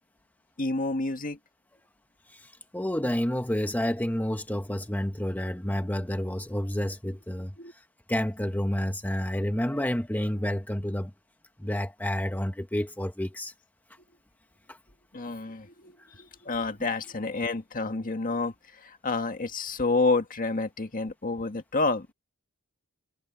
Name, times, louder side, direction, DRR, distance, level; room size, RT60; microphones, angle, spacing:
voice 1, 0.6-1.4 7.6-7.7 15.1-22.1, left 3 dB, 40° left, 1.8 m, -29 dB
voice 2, 2.3-7.5 8.1-11.1 11.6-13.5, left 1 dB, 10° left, 1.2 m, -29 dB
head